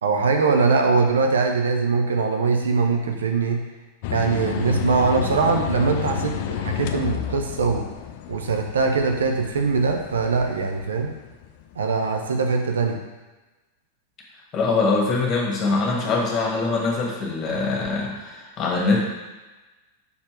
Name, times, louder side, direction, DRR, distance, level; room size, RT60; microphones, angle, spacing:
voice 1, 0.0-3.6 4.1-7.9 8.3-11.1 11.8-13.0, right 4 dB, 65° right, 3 dB, 0.7 m, -22 dB
sound 1, 4.0-12.1, left 10 dB, 50° left, 0.4 m, -31 dB
voice 2, 14.5-19.1, left 3 dB, 30° left, -2 dB, 1.6 m, -23 dB
5.4 x 4.3 x 4.6 m, 1.2 s
figure-of-eight pair, 90°, 0 cm